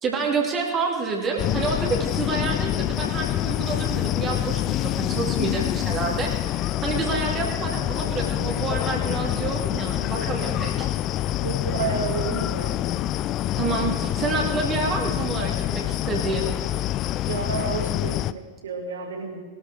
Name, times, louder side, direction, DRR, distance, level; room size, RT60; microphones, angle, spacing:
voice 1, 0.0-10.9 13.5-16.5, right 4 dB, 25° right, -1 dB, 2.5 m, -28 dB
sound 1, 1.4-18.3, left 13 dB, 35° left, 0.4 m, -26 dB
voice 2, 11.4-12.8 17.3-19.4, right 5 dB, 65° right, 2 dB, 2.4 m, -30 dB
20.5 x 13.0 x 3.7 m, 1.3 s
figure-of-eight pair, 90°, 0 cm